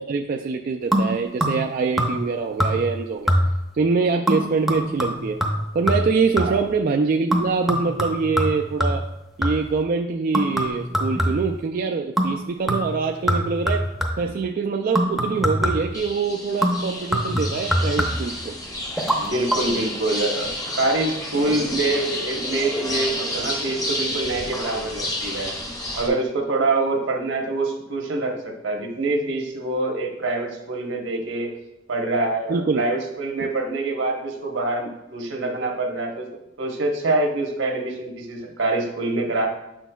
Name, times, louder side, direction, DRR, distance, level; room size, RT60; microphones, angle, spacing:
voice 1, 0.0-3.3 3.7-5.4 5.7-9.0 9.4-13.8 14.2-18.6 32.5-32.9, right 4 dB, 45° right, 2 dB, 0.3 m, -24 dB
sound 1, 0.9-1.7 2.0-2.3 2.6-3.0 3.3-3.7 4.3-6.7 7.3-9.8 10.3-11.6 12.2-12.4 12.7-14.3 15.0-16.0 16.6-18.4 19.0-19.2 19.5-19.6, equal, ahead, 0.7 m, -24 dB
sound 2, 15.9-26.1, left 1 dB, 20° left, 1.0 m, -30 dB
voice 2, 19.2-25.5 26.0-31.5 31.9-36.3 36.6-39.5, right 2 dB, 75° right, 2 dB, 1.0 m, -25 dB
8.0 x 6.2 x 2.3 m, 0.92 s
head